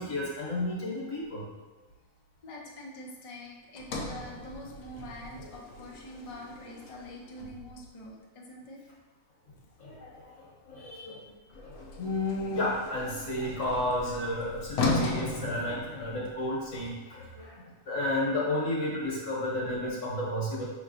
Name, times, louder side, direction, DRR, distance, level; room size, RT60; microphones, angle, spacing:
voice 1, 0.0-1.4 5.3-5.5 9.8-11.2 11.6-20.7, left 1 dB, 65° left, -5 dB, 1.5 m, -32 dB
voice 2, 2.4-8.8, left 1 dB, 45° left, -2 dB, 0.4 m, -45 dB
Sliding door, 3.8-8.0 11.5-16.4, left 3 dB, 80° left, 1.0 m, -36 dB
5.2 x 3.0 x 2.6 m, 1.2 s
omnidirectional pair, 1.4 m